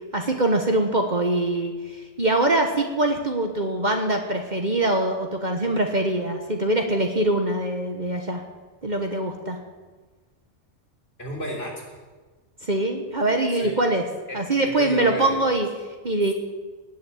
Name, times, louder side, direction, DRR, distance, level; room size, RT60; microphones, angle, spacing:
voice 1, 0.1-8.4 8.8-9.6 12.6-14.0 14.3-15.7 16.0-16.3, right 2 dB, 35° right, 3 dB, 1.3 m, -23 dB
voice 2, 11.2-12.0 13.6-13.8 14.3-15.4, equal, 50° left, -1 dB, 3.8 m, -33 dB
19.0 x 6.6 x 9.5 m, 1.3 s
omnidirectional pair, 1.3 m